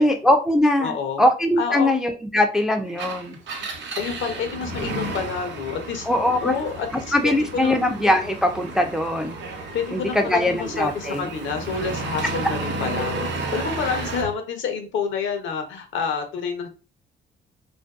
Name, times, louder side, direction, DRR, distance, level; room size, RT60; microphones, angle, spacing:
voice 1, 0.0-3.4 6.1-6.5 7.1-9.4 9.9-11.3, left 1 dB, 5° right, 5 dB, 0.3 m, -21 dB
voice 2, 0.8-1.2 1.6-1.9 4.0-6.1 6.4-7.8 9.7-16.7, left 6 dB, 75° left, 5 dB, 0.7 m, -28 dB
Engine, 2.9-14.3, right 2 dB, 65° right, 0.6 m, -32 dB
2.5 x 2.2 x 2.3 m, 0.33 s
cardioid pair, 90°, 20 cm